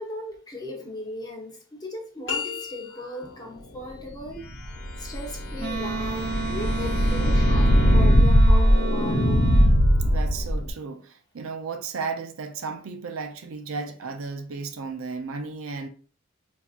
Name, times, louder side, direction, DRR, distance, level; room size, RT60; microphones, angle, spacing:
voice 1, 0.0-4.4 5.0-9.5, left 1 dB, 20° left, 0.9 m, -37 dB
sound 1, 2.3-3.4, left 7 dB, 60° left, 1.0 m, -32 dB
sound 2, 4.4-10.7, equal, 90° left, 1.0 m, -20 dB
Wind instrument woodwind instrument, 5.6-9.8, right 4 dB, 55° right, 1.1 m, -32 dB
voice 2, 10.0-15.9, right 4 dB, 75° right, 0.5 m, -34 dB
4.4 x 2.6 x 2.4 m
head